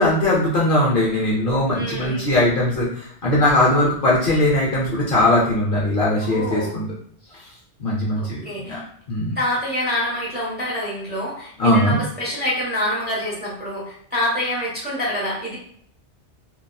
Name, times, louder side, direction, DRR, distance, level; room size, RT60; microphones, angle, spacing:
voice 1, 0.0-6.8 7.8-8.8 9.1-9.4 11.6-12.0, left 1 dB, 55° left, -6 dB, 0.7 m, -20 dB
voice 2, 1.7-2.3 6.2-6.7 8.2-8.8 9.3-15.6, left 1 dB, 10° right, -7 dB, 0.8 m, -26 dB
2.7 x 2.3 x 2.2 m, 0.62 s
omnidirectional pair, 1.2 m